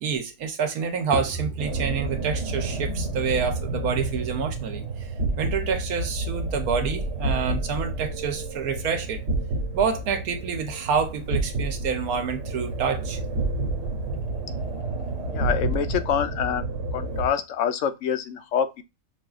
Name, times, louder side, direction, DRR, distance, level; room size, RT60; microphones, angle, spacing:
voice 1, 0.0-5.1 5.4-9.2 9.7-13.2, right 6 dB, 80° right, 1.2 m, -28 dB
sound 1, 1.6-17.3, right 2 dB, 60° right, 1.5 m, -29 dB
sound 2, 14.9-17.6, right 3 dB, 40° right, 1.2 m, -43 dB
voice 2, 15.3-16.7 16.9-18.8, left 8 dB, 65° left, 0.8 m, -26 dB
6.1 x 2.6 x 2.3 m
omnidirectional pair, 1.5 m